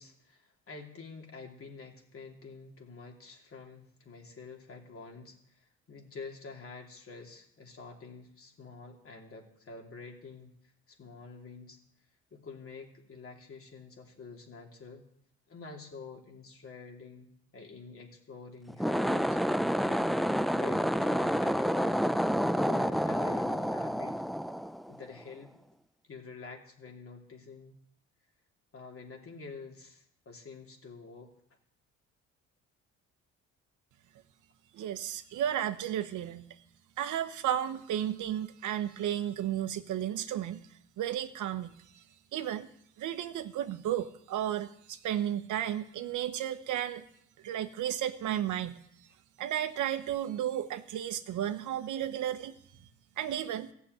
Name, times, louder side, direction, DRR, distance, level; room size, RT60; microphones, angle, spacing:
voice 1, 0.0-11.8 12.3-15.0 15.5-19.6 19.9-20.2 20.6-22.1 22.5-24.2 24.9-25.5 26.0-27.8 28.7-31.3, left 4 dB, 45° left, 2 dB, 2.9 m, -48 dB
sound 1, 18.7-25.2, equal, ahead, 0.4 m, -29 dB
voice 2, 34.7-36.5 37.0-40.6 41.0-42.0 42.3-42.7 43.0-47.0 47.4-48.8 49.4-52.6 53.2-53.7, right 11 dB, 80° right, 10 dB, 1.0 m, -33 dB
14.5 x 7.0 x 9.1 m, 0.70 s
cardioid pair, 90°, 30 cm